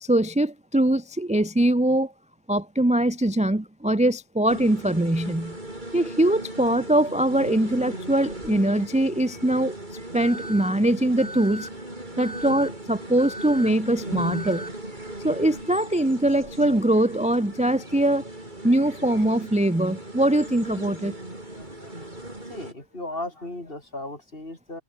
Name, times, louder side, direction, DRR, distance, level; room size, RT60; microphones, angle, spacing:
voice 1, 0.0-2.1 2.5-5.6 5.9-9.8 10.1-11.7 12.2-14.6 15.2-18.2 18.6-21.1, right 1 dB, 5° right, 0.8 m, -22 dB
sound 1, 4.5-22.7, right 1 dB, 35° right, 5.7 m, -38 dB
Alarm, 10.2-10.7 11.2-11.7 12.2-12.7 13.2-13.7 14.2-14.7, left 1 dB, 15° left, 5.0 m, -38 dB
voice 2, 21.5-22.1 22.5-24.8, left 1 dB, 40° left, 5.4 m, -36 dB
omnidirectional pair, 1.5 m